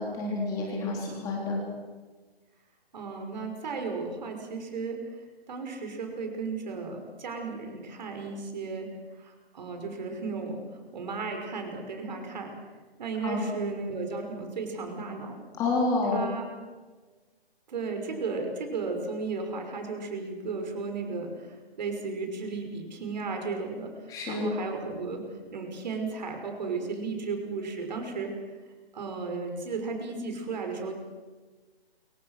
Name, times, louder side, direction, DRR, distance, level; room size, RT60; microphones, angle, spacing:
voice 1, 0.0-1.6 13.2-13.5 15.6-16.2 24.1-24.5, left 2 dB, 10° left, -1 dB, 3.8 m, -29 dB
voice 2, 2.9-5.1 5.5-8.9 9.2-10.6 10.9-12.5 13.0-15.4 16.1-16.4 17.7-25.2 25.5-28.3 28.9-30.9, right 4 dB, 45° right, 4 dB, 5.7 m, -34 dB
28.0 x 24.5 x 6.6 m, 1.4 s
hypercardioid pair, 165°, 31 cm